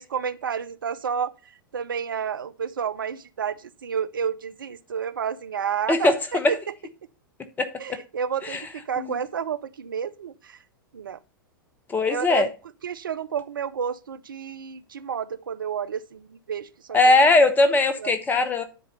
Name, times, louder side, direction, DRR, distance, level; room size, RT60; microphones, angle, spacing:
voice 1, 0.1-1.3 1.7-6.1 6.5-6.6 7.8-10.6 10.9-11.2 12.1-12.5 12.8-16.7 17.0-17.2 18.0-18.1, right 7 dB, 70° right, 0.5 m, -30 dB
voice 2, 5.9-6.5 7.6-8.0 8.4-8.7 9.0-9.2 11.9-12.5 16.9-18.6, left 2 dB, 15° left, 1.0 m, -20 dB
9.9 x 4.1 x 5.4 m
figure-of-eight pair, 95°, 12 cm